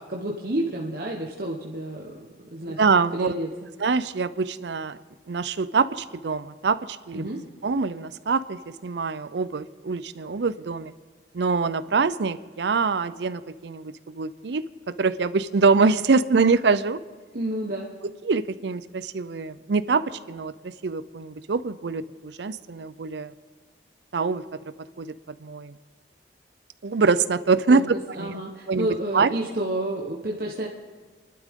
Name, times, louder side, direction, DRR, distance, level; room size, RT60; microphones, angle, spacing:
voice 1, 0.0-2.8 3.1-3.5 7.1-7.4 17.3-17.9 27.7-30.7, right 1 dB, 55° right, -2 dB, 1.2 m, -30 dB
voice 2, 2.8-3.3 3.8-5.0 5.3-7.3 7.6-10.9 11.3-14.7 15.0-17.0 18.2-23.3 24.1-24.4 25.0-25.1 25.4-25.7 26.8-27.8 28.2-28.4 28.7-28.9 29.1-29.3, right 4 dB, 75° right, 15 dB, 0.5 m, -24 dB
29.5 x 12.0 x 3.7 m, 1.5 s
head